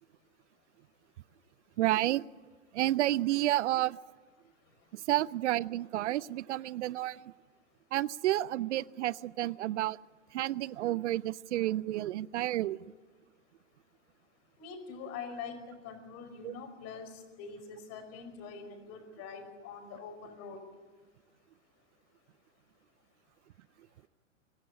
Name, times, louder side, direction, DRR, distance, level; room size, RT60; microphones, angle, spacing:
voice 1, 1.8-2.2 2.7-4.0 4.9-7.2 7.9-10.0 10.3-12.8 16.4-16.5, right 14 dB, 65° right, 22 dB, 0.6 m, -30 dB
voice 2, 14.6-20.6, left 5 dB, 40° left, 7 dB, 5.3 m, -44 dB
24.5 x 14.5 x 9.6 m, 1.4 s
hypercardioid pair, 120°, 39 cm